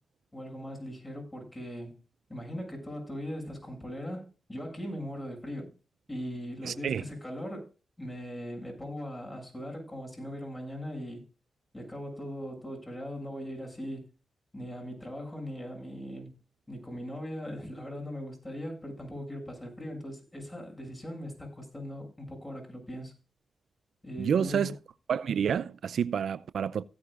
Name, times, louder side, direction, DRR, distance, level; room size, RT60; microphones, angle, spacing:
voice 1, 0.3-2.0 2.3-5.7 6.1-7.7 8.0-11.2 11.7-14.1 14.5-16.3 16.7-23.1 24.0-24.7, equal, 20° left, 7.3 m, -39 dB
voice 2, 6.6-7.0 24.2-24.7 25.1-26.8, right 7 dB, 75° right, 0.5 m, -29 dB
16.5 x 9.7 x 2.5 m
cardioid pair, 55°, 0 cm